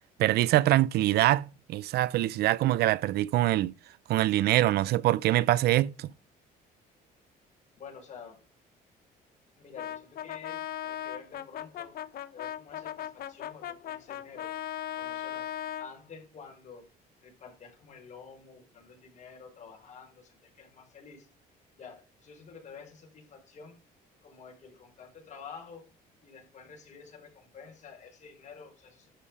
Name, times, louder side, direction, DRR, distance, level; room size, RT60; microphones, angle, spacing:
voice 1, 0.2-3.7 4.1-6.1, right 15 dB, 70° right, 0.6 m, -24 dB
voice 2, 7.8-8.4 9.6-11.9 12.3-14.5 14.9-15.5 15.8-16.8 17.2-21.3 21.7-23.8 24.2-25.9 26.2-29.1, left 5 dB, 45° left, 5.7 m, -49 dB
Brass instrument, 9.8-15.9, left 11 dB, 65° left, 1.0 m, -38 dB
11.5 x 7.0 x 4.9 m
cardioid pair, 110°, 17 cm